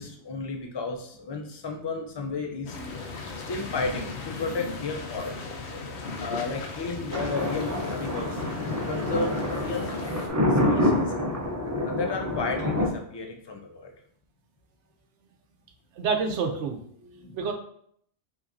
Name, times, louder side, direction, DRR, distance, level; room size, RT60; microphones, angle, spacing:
voice 1, 0.0-2.8 3.4-5.5 6.2-9.9 10.5-11.2 11.8-13.9 17.2-17.4, left 3 dB, 35° left, 3 dB, 0.4 m, -33 dB
sound 1, 2.7-10.3, left 3 dB, 70° left, 1.0 m, -37 dB
Thunder, 7.1-12.9, left 1 dB, 25° right, 0.4 m, -27 dB
voice 2, 16.0-17.5, right 5 dB, 80° right, 4 dB, 1.0 m, -29 dB
5.7 x 3.1 x 2.6 m, 0.65 s
omnidirectional pair, 1.2 m